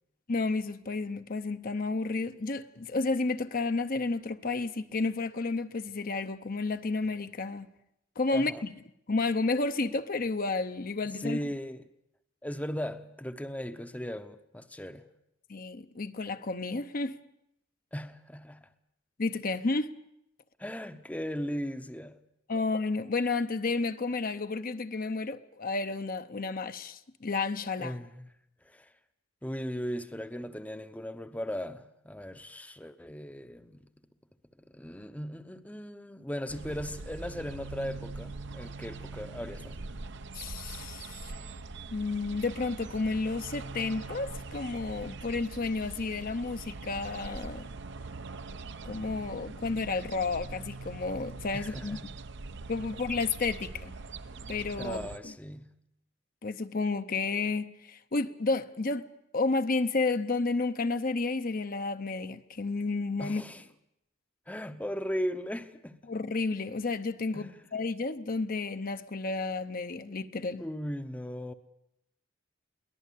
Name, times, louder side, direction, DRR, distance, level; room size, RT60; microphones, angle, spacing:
voice 1, 0.3-7.7 8.2-8.7 9.1-11.4 15.5-17.2 19.2-19.9 22.5-28.0 40.3-41.4 41.9-47.7 48.8-52.0 52.7-53.9 54.5-55.3 56.4-59.0 59.3-63.4 66.1-70.6, left 3 dB, 45° left, 0.8 m, -31 dB
voice 2, 8.3-8.6 11.0-11.8 12.4-15.0 17.9-18.7 20.6-22.2 27.8-28.3 28.6-28.9 29.4-33.8 34.7-39.9 51.5-52.1 54.8-55.7 63.2-63.6 64.5-66.0 67.3-67.6 70.6-71.5, equal, 5° left, 0.8 m, -37 dB
sound 1, 36.5-55.2, right 3 dB, 60° right, 0.8 m, -42 dB
22.5 x 18.5 x 8.4 m
head